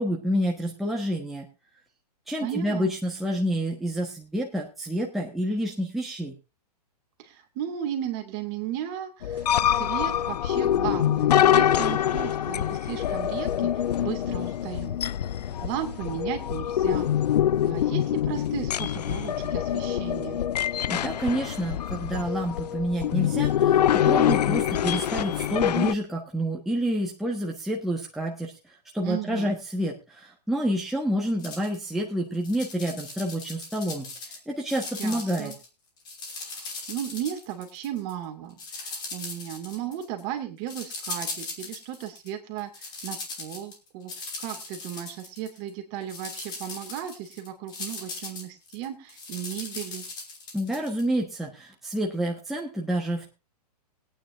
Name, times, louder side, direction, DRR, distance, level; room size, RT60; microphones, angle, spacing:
voice 1, 0.0-1.5 2.3-6.3 20.9-28.5 28.9-34.1 34.5-35.5 50.5-53.3, equal, ahead, -2 dB, 1.3 m, -28 dB
voice 2, 2.4-2.9 7.2-15.0 15.6-17.1 17.7-20.4 29.0-29.5 35.0-35.5 36.5-50.0, right 10 dB, 35° right, 5 dB, 2.4 m, -35 dB
sound 1, 9.2-25.9, left 10 dB, 80° left, 0.5 m, -25 dB
sound 2, 31.4-31.9 32.3-34.4 34.7-35.7 36.0-38.1 38.6-40.2 40.7-42.3 42.6-45.7 46.0-51.0, left 3 dB, 20° left, 2.9 m, -38 dB
21.5 x 9.2 x 2.7 m, 0.29 s
hypercardioid pair, 150°, 21 cm